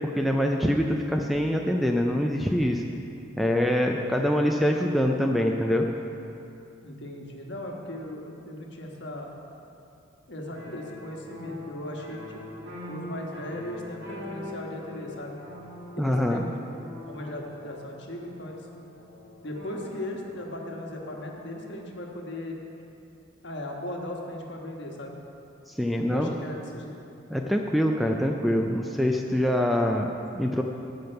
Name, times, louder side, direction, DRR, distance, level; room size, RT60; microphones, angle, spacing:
voice 1, 0.1-2.8 3.4-5.9 16.0-16.4 25.7-26.3 27.3-30.6, equal, ahead, 2 dB, 0.4 m, -24 dB
voice 2, 3.7-4.4 6.8-9.3 10.3-12.5 12.9-15.4 16.0-16.5 17.1-18.6 19.4-22.6 23.4-25.2 26.1-27.0, left 1 dB, 60° left, 0 dB, 1.3 m, -38 dB
sound 1, 10.5-21.8, left 1 dB, 55° right, 2.7 m, -43 dB
15.5 x 5.3 x 5.6 m, 2.7 s
head